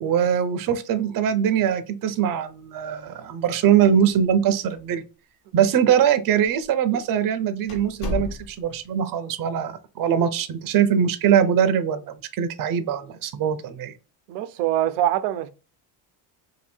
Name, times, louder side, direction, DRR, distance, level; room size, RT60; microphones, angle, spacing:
voice 1, 0.0-5.0 5.5-12.0 12.3-13.9, right 8 dB, 45° right, 0.6 m, -22 dB
sound 1, 3.8-4.4 4.7-4.8 5.6-5.7 6.4-6.6 7.0-7.1 7.7-8.8, left 3 dB, 45° left, 1.3 m, -33 dB
voice 2, 14.3-15.5, right 12 dB, 90° right, 0.6 m, -23 dB
2.7 x 2.7 x 4.3 m
supercardioid pair, 95°, 48 cm